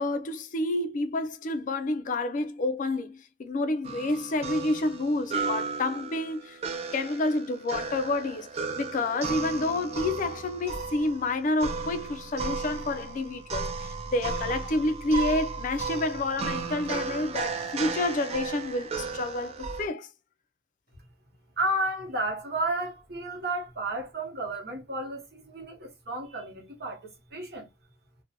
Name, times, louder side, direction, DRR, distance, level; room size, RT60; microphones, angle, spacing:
voice 1, 0.0-6.6 6.9-8.5 8.8-20.1, left 2 dB, 45° left, 0.4 m, -29 dB
sound 1, 3.8-19.9, right 4 dB, 35° right, 0.4 m, -35 dB
voice 2, 21.6-27.7, right 1 dB, 65° right, 1.0 m, -32 dB
2.6 x 2.1 x 2.7 m
head